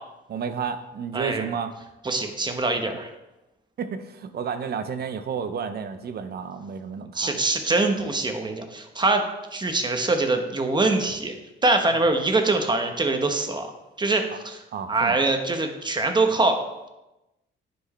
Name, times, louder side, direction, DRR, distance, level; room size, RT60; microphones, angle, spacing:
voice 1, 0.3-1.7 3.8-7.4 14.3-14.4 14.7-15.2, right 6 dB, 55° right, 10 dB, 0.7 m, -31 dB
voice 2, 1.1-1.5 2.0-3.1 7.1-9.3 9.5-11.4 11.6-13.7 14.0-14.6 14.9-16.6, right 2 dB, 20° right, 5 dB, 1.0 m, -23 dB
9.9 x 4.6 x 3.2 m, 0.98 s
cardioid pair, 90°, 20 cm